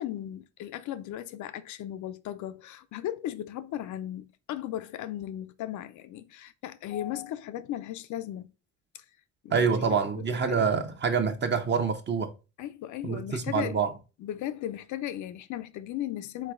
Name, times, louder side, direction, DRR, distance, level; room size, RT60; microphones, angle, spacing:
voice 1, 0.0-8.5 8.9-9.0 9.4-10.7 12.6-13.8 14.2-16.5, left 12 dB, 75° left, 0.5 m, -36 dB
voice 2, 9.5-12.3 13.0-13.9, right 5 dB, 35° right, 0.8 m, -26 dB
3.9 x 3.2 x 3.6 m
cardioid pair, 90°, 30 cm